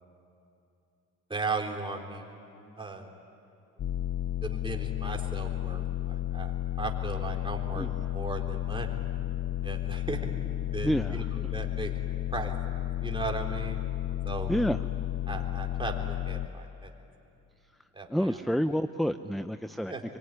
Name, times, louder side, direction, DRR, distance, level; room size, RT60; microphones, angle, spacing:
voice 1, 1.3-2.3 2.8-3.1 4.4-6.5 6.8-9.0 9.6-10.2 10.7-12.5 13.0-13.8 14.2-14.5 15.3-16.9 17.9-18.4 19.9-20.0, right 3 dB, 15° right, 1 dB, 3.7 m, -37 dB
sound 1, 3.8-16.5, left 12 dB, 45° left, 0.5 m, -32 dB
voice 2, 10.8-11.2 14.5-14.8 15.3-15.4 18.1-19.9, equal, ahead, 11 dB, 0.6 m, -29 dB
25.5 x 23.0 x 9.9 m, 2.8 s
cardioid pair, 90°, 30 cm